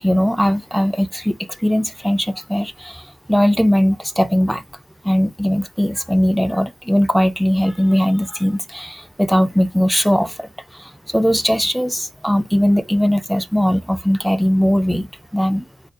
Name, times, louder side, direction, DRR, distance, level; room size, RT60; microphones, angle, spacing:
voice 1, 0.0-4.6 5.0-15.6, equal, ahead, 0.3 m, -19 dB
2.5 x 2.0 x 2.5 m
supercardioid pair, 45°, 4 cm